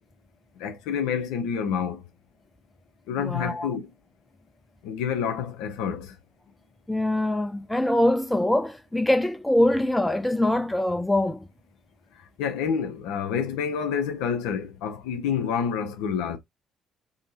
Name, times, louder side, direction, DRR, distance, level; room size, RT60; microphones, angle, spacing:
voice 1, 0.6-2.0 3.1-3.9 4.8-6.2 12.4-16.4, left 7 dB, 65° left, 0.5 m, -28 dB
voice 2, 3.2-3.7 6.9-11.5, left 1 dB, 10° left, 0.4 m, -23 dB
2.7 x 2.7 x 2.6 m
figure-of-eight pair, 45°, 0 cm